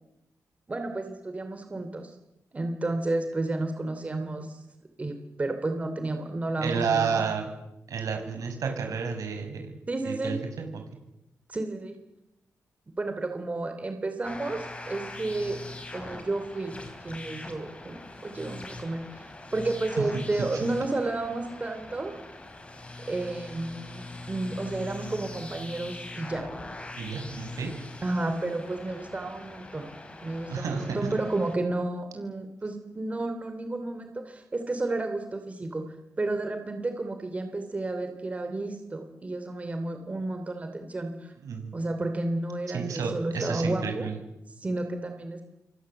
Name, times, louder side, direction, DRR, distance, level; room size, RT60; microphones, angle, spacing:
voice 1, 0.7-2.1 2.5-4.6 5.0-7.3 9.9-10.3 11.5-12.0 13.0-15.6 15.9-16.8 17.0-18.0 18.2-19.0 19.5-22.1 23.1-26.5 28.0-29.9 30.2-35.9 36.2-41.3 41.7-44.1 44.6-45.4, right 2 dB, 25° right, 6 dB, 3.0 m, -31 dB
voice 2, 6.6-7.4 7.9-9.8 10.1-10.7 20.1-20.2 27.0-27.7 30.5-31.0 41.4-41.7 42.7-44.2, right 6 dB, 75° right, 5 dB, 7.1 m, -30 dB
sound 1, 14.2-31.6, left 2 dB, 20° left, 4.7 m, -42 dB
28.5 x 23.5 x 7.9 m, 0.91 s
wide cardioid pair, 145°, 6 cm